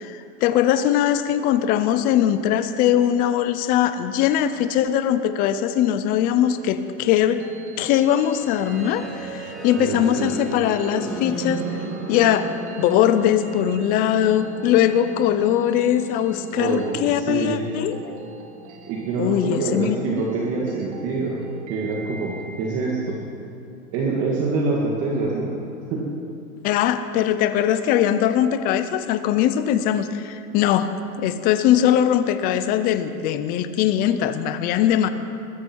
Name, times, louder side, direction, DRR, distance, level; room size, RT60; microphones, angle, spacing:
voice 1, 0.0-7.4 7.8-11.6 12.1-12.5 12.8-18.1 19.2-20.0 26.6-30.9 31.2-35.1, left 10 dB, 20° left, 11 dB, 0.5 m, -21 dB
sound 1, 7.2-23.1, right 3 dB, 55° right, 2.3 m, -45 dB
sound 2, 8.4-20.3, right 2 dB, ahead, 2.8 m, -36 dB
voice 2, 9.8-10.3 16.5-17.6 18.9-21.4 21.7-23.2 23.9-25.5 25.9-26.1, right 3 dB, 35° right, -3 dB, 2.2 m, -25 dB
21.0 x 14.0 x 4.6 m, 2.5 s
supercardioid pair, 155°, 41 cm